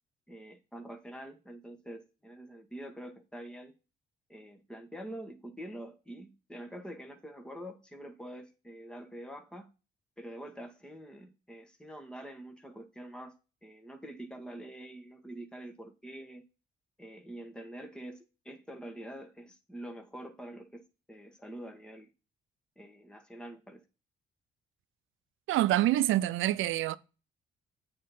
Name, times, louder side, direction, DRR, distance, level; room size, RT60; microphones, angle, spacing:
voice 1, 0.3-3.7 4.3-9.7 10.2-13.4 13.6-16.5 17.0-22.1 22.8-23.8, right 1 dB, 5° left, 1.4 m, -46 dB
voice 2, 25.5-27.0, right 14 dB, 80° right, 0.6 m, -26 dB
8.6 x 4.3 x 5.5 m
cardioid pair, 90°, 20 cm